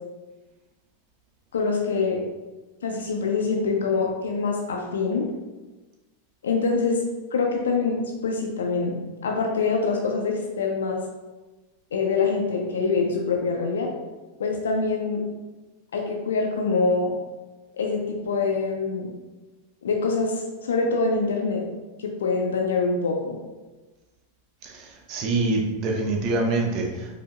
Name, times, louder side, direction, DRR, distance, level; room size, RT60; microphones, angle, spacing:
voice 1, 1.5-2.2 2.8-5.3 6.4-7.0 7.3-9.0 9.2-11.0 11.9-13.9 14.4-15.2 15.9-17.1 17.7-19.1 19.8-21.6 22.0-23.4, left 4 dB, 65° left, 1 dB, 0.6 m, -25 dB
voice 2, 24.6-27.2, right 2 dB, 40° right, 0 dB, 0.8 m, -25 dB
5.1 x 2.7 x 2.3 m, 1.2 s
figure-of-eight pair, 90°, 0 cm